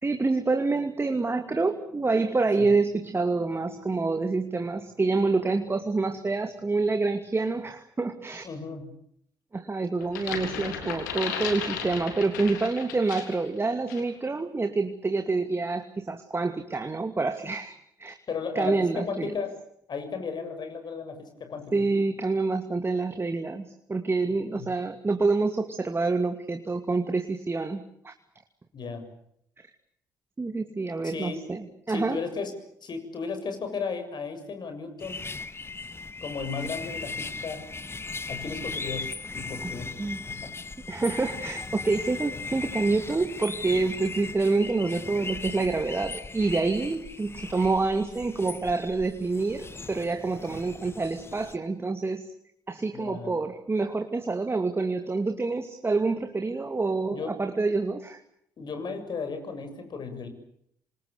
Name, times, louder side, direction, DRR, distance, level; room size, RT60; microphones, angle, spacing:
voice 1, 0.0-8.5 9.5-18.2 18.5-19.3 21.7-28.1 30.4-32.2 39.6-39.7 40.0-40.2 40.9-52.2 52.7-58.2, right 3 dB, 25° right, 7 dB, 2.5 m, -27 dB
voice 2, 8.4-8.9 18.3-19.6 19.9-21.9 24.6-24.7 28.7-29.0 31.0-31.4 31.9-32.5 32.8-35.2 36.2-37.7 38.3-39.9 40.3-40.5 52.9-53.3 57.1-57.3 58.6-60.3, left 5 dB, 50° left, 7 dB, 7.2 m, -35 dB
sound 1, 10.0-13.5 13.9-14.1, left 7 dB, 80° left, 3.5 m, -35 dB
sound 2, 35.0-51.6, left 3 dB, 25° left, 1.6 m, -38 dB
28.0 x 26.0 x 6.9 m, 0.70 s
hypercardioid pair, 45°, 10 cm